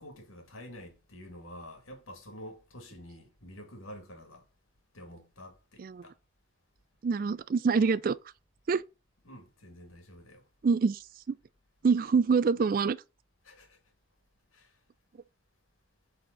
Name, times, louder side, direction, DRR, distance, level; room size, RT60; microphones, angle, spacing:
voice 1, 0.0-4.4 4.9-6.1 9.2-10.4 13.4-13.8 14.5-14.7, equal, 85° left, 2.3 m, -48 dB
voice 2, 7.0-8.2 8.7-8.8 10.6-11.0 11.3-11.4 11.8-13.0, right 5 dB, 45° right, 0.3 m, -25 dB
8.6 x 4.3 x 3.9 m
head